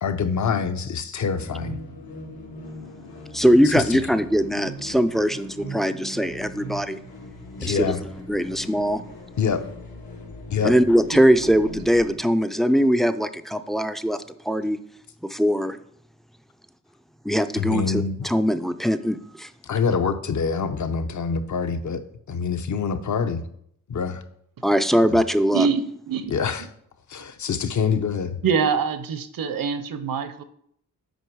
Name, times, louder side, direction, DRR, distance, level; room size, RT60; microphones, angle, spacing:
voice 1, 0.0-1.8 3.6-4.0 7.6-8.0 9.4-9.6 10.5-10.7 17.6-18.3 19.6-22.0 22.3-23.4 23.9-24.2 26.3-26.6 27.1-28.4, left 5 dB, 55° left, 9 dB, 0.8 m, -25 dB
sound 1, 1.3-12.1, equal, 85° left, 1.7 m, -39 dB
voice 2, 3.3-7.0 7.6-7.9 8.3-9.0 10.6-14.8 15.2-15.8 17.2-19.5 24.6-25.7, equal, ahead, 10 dB, 0.4 m, -21 dB
voice 3, 25.5-26.3 28.4-30.4, right 6 dB, 70° right, 12 dB, 0.8 m, -24 dB
7.9 x 5.3 x 4.6 m, 0.69 s
wide cardioid pair, 100°, 35 cm